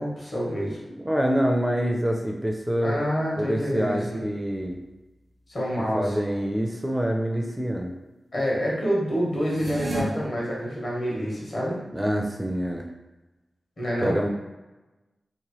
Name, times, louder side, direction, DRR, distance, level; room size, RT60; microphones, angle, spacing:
voice 1, 0.0-0.8 2.8-4.3 5.5-6.1 8.3-11.8 13.8-14.2, equal, 60° left, -5 dB, 1.3 m, -27 dB
voice 2, 1.0-3.0 3.4-4.8 5.8-7.9 11.9-12.9 14.0-14.3, equal, 10° right, 1 dB, 0.4 m, -26 dB
sound 1, 9.4-10.0, right 3 dB, 75° right, 0.6 m, -32 dB
2.9 x 2.1 x 3.0 m, 1.1 s
cardioid pair, 45°, 0 cm